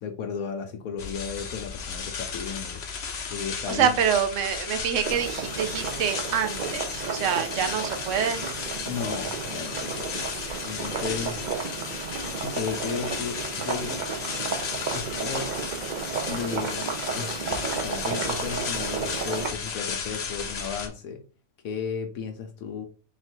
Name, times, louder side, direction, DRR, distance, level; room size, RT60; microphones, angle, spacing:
voice 1, 0.0-2.8 3.3-4.0 8.8-10.3 10.6-11.4 12.4-14.0 14.9-15.6 16.2-21.2 21.6-22.9, left 6 dB, 75° left, 4 dB, 1.1 m, -34 dB
sound 1, 1.0-20.9, left 5 dB, 55° left, 0.9 m, -34 dB
voice 2, 3.7-8.5, right 8 dB, 65° right, 8 dB, 0.9 m, -26 dB
sound 2, 5.0-19.5, right 6 dB, 50° right, 0.6 m, -33 dB
4.0 x 2.4 x 4.4 m, 0.36 s
omnidirectional pair, 1.5 m